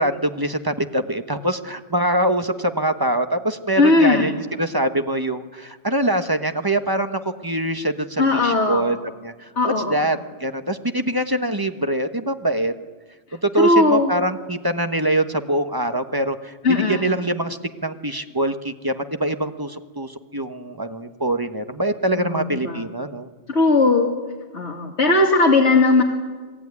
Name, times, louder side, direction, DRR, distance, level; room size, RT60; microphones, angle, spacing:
voice 1, 0.0-9.0 9.2-9.5 9.9-12.7 13.4-23.3, right 1 dB, 20° right, 8 dB, 1.2 m, -24 dB
voice 2, 3.8-4.3 8.2-8.9 9.6-10.0 13.6-14.1 16.6-17.1 22.1-22.8 23.5-24.1 24.5-26.0, left 3 dB, 70° left, 0 dB, 2.5 m, -18 dB
28.0 x 19.0 x 9.7 m, 1.4 s
omnidirectional pair, 1.2 m